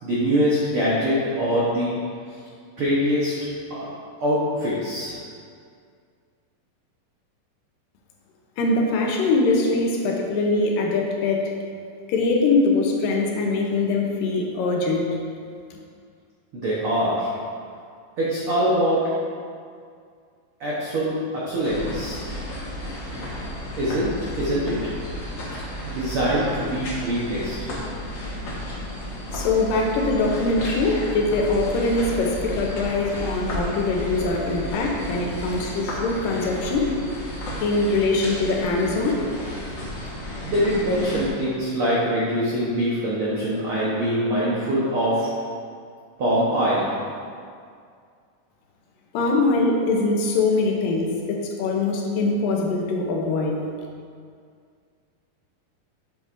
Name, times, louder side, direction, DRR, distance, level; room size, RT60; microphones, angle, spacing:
voice 1, 0.0-1.9 2.8-3.3 3.7-3.9 4.2-5.2 16.5-17.3 18.2-19.0 20.6-22.2 23.8-24.8 25.8-27.5 40.4-45.3 46.2-46.9, equal, 75° right, -8 dB, 1.2 m, -23 dB
voice 2, 8.6-11.5 12.1-15.1 15.7-15.8 29.3-36.9 37.6-39.2 49.1-53.6, left 3 dB, 80° left, 0 dB, 2.4 m, -22 dB
sound 1, 21.6-41.3, equal, 55° left, 1.3 m, -33 dB
8.3 x 7.6 x 2.6 m, 2.2 s
omnidirectional pair, 4.0 m